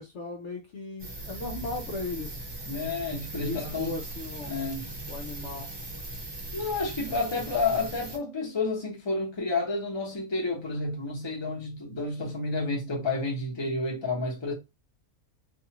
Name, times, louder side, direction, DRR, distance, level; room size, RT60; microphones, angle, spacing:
voice 1, 0.0-2.4 3.4-4.5 5.1-5.7 7.1-7.2, left 3 dB, 65° left, 0.8 m, -37 dB
sound 1, 1.0-8.2, right 2 dB, 25° right, 0.6 m, -39 dB
voice 2, 2.6-3.9 4.5-4.8 6.5-14.5, left 3 dB, 25° left, 0.8 m, -30 dB
2.6 x 2.4 x 2.9 m
omnidirectional pair, 1.5 m